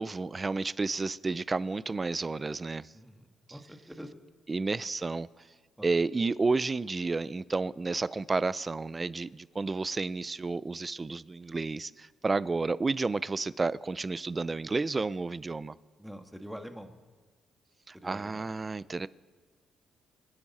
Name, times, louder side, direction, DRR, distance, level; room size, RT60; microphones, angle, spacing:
voice 1, 0.0-2.9 3.5-3.6 4.5-5.3 5.8-15.8 17.9-19.1, right 3 dB, 25° right, 18 dB, 0.5 m, -31 dB
voice 2, 2.9-4.1 5.8-5.9 11.4-11.5 16.0-16.9 17.9-18.5, equal, ahead, 6 dB, 1.5 m, -45 dB
27.0 x 10.0 x 4.2 m, 1.4 s
cardioid pair, 90°, 0 cm